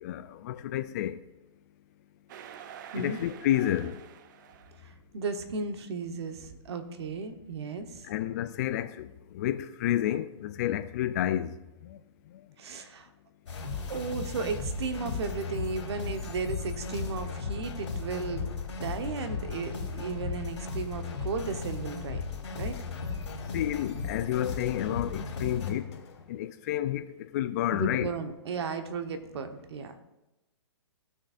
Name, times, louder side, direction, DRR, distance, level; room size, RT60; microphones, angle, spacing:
voice 1, 0.0-1.2 3.0-4.0 8.1-9.1 9.3-11.5 11.8-12.0 23.5-25.9 26.3-28.1, left 12 dB, 35° left, 0.3 m, -30 dB
sound 1, 2.3-4.9, right 9 dB, 40° right, 0.5 m, -47 dB
voice 2, 4.7-8.1 12.6-13.1 13.5-18.5 18.8-22.2 22.6-22.8 27.7-30.0, right 4 dB, 65° right, 1.2 m, -35 dB
sound 2, 13.5-25.7, left 4 dB, 85° left, 3.0 m, -36 dB
sound 3, 14.8-18.9 22.2-26.4 27.2-27.3, left 6 dB, 65° left, 1.5 m, -52 dB
16.0 x 6.5 x 2.5 m
hypercardioid pair, 155°, 15 cm